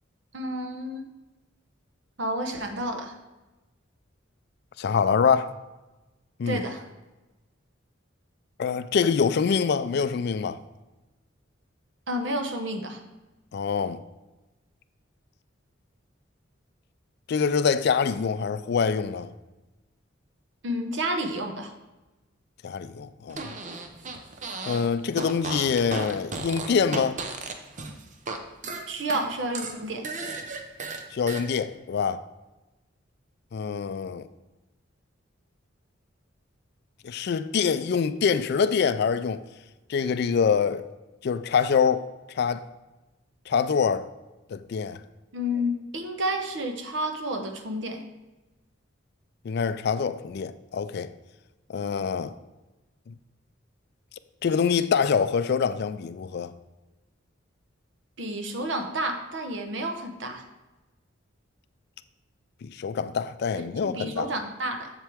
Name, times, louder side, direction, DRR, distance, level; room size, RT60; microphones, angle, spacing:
voice 1, 0.3-1.0 2.2-3.1 6.5-6.8 12.1-13.0 20.6-21.7 28.9-30.1 45.3-48.0 58.2-60.4 63.5-64.9, equal, 65° right, 0.9 m, -30 dB
voice 2, 4.8-5.5 6.4-6.6 8.6-10.6 13.5-14.0 17.3-19.3 22.6-23.5 24.7-27.2 31.1-32.2 33.5-34.3 37.0-39.4 39.9-40.8 41.2-42.6 43.5-44.0 44.5-45.0 49.4-51.1 51.7-52.3 53.1-53.2 54.4-56.5 62.6-64.3, left 6 dB, 55° left, 0.3 m, -25 dB
Fart, 23.3-24.9 25.1-28.4 28.6-31.4, right 3 dB, 40° right, 0.7 m, -35 dB
7.6 x 7.5 x 3.5 m
head